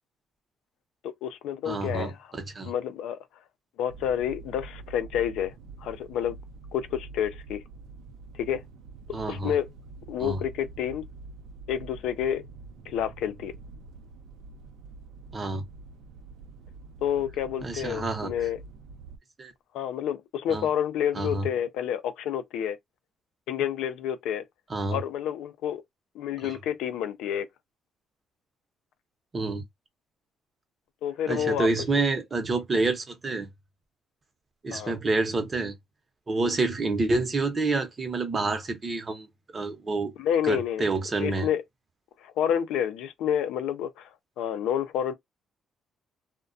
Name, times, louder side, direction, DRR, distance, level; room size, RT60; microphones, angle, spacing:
voice 1, 1.0-2.2 2.6-3.2 3.8-5.5 5.8-6.4 6.7-7.6 8.3-8.6 9.3-9.7 10.1-11.0 11.7-12.4 12.9-13.5 17.0-18.6 19.7-22.8 23.5-24.4 24.9-25.8 26.1-27.5 31.0-32.0 34.7-34.9 40.2-40.9 41.2-41.6 42.2-44.1 44.4-45.1, left 9 dB, 85° left, 0.4 m, -29 dB
voice 2, 1.6-2.7 9.1-9.6 10.2-10.4 15.3-15.6 17.6-18.3 19.4-19.5 20.5-20.7 21.1-21.5 24.7-25.0 26.4-26.6 29.3-29.6 31.3-33.5 34.6-35.7 36.3-40.1 40.4-41.5, right 3 dB, 30° right, 0.7 m, -28 dB
sound 1, 3.9-19.2, right 4 dB, 85° right, 0.4 m, -46 dB
2.3 x 2.1 x 2.5 m
cardioid pair, 100°, 0 cm